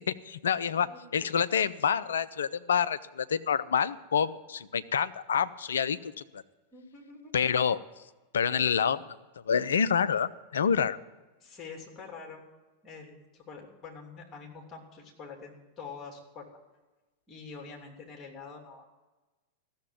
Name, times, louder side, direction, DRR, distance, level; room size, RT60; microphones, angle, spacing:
voice 1, 0.1-6.4 7.3-7.8 8.3-9.1 9.5-11.0, left 7 dB, 65° left, 15 dB, 0.5 m, -27 dB
voice 2, 0.6-1.3 6.7-7.3 11.4-12.4 12.8-16.5 17.3-18.9, left 5 dB, 20° left, 1 dB, 3.1 m, -46 dB
15.0 x 7.1 x 9.2 m, 1.2 s
figure-of-eight pair, 90°, 0 cm